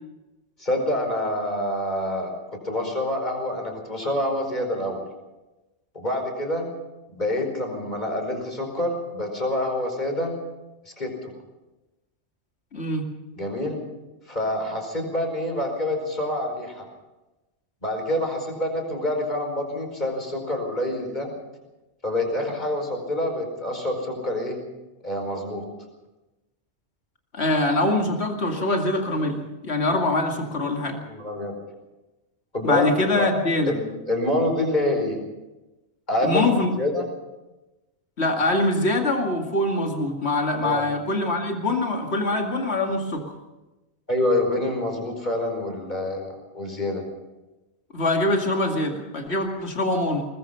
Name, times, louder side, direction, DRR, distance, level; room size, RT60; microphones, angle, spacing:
voice 1, 0.6-5.0 5.9-6.7 7.1-10.3 10.8-11.3 13.3-13.8 14.3-16.9 17.8-21.3 22.0-24.6 25.0-25.6 31.0-31.5 32.5-33.3 33.7-35.2 36.1-37.0 40.6-40.9 44.1-47.0, left 1 dB, 40° left, 3 dB, 5.0 m, -27 dB
voice 2, 12.7-13.1 27.3-31.0 32.6-33.8 36.2-36.7 38.2-43.3 47.9-50.3, left 2 dB, 70° left, 2 dB, 2.6 m, -24 dB
23.0 x 20.0 x 5.7 m, 1.0 s
omnidirectional pair, 1.2 m